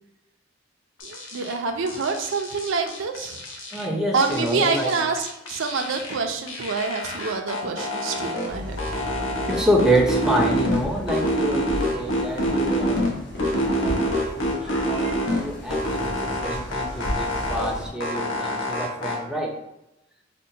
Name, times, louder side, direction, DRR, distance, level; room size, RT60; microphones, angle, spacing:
sound 1, 1.0-1.5 1.9-3.9 4.2-6.2 6.5-8.5 8.8-10.8 11.1-13.1 13.4-15.4 15.7-17.7 18.0-19.2, equal, 85° left, 0.8 m, -26 dB
voice 1, 1.0-3.4 4.1-8.8, right 4 dB, 80° right, 5 dB, 0.5 m, -26 dB
voice 2, 3.7-4.9 9.5-13.0 13.5-19.6, right 1 dB, 5° right, 0 dB, 0.5 m, -27 dB
sound 2, 8.5-17.9, equal, 60° left, 0.9 m, -35 dB
5.2 x 2.2 x 2.7 m, 0.90 s
head